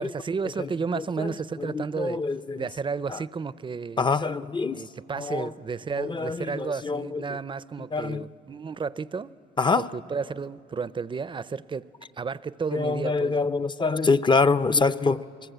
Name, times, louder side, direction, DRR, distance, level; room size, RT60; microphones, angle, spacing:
voice 1, 0.0-2.2 2.6-4.1 4.7-9.3 9.7-11.8 12.2-13.5, right 5 dB, 25° right, 0.5 m, -32 dB
voice 2, 1.0-1.3 1.6-2.7 3.1-3.2 4.0-4.8 5.2-5.5 6.0-7.2 7.9-8.3 9.6-9.9 12.7-15.2, left 4 dB, 25° left, 0.6 m, -25 dB
29.0 x 21.0 x 8.1 m
cardioid pair, 90°, 20 cm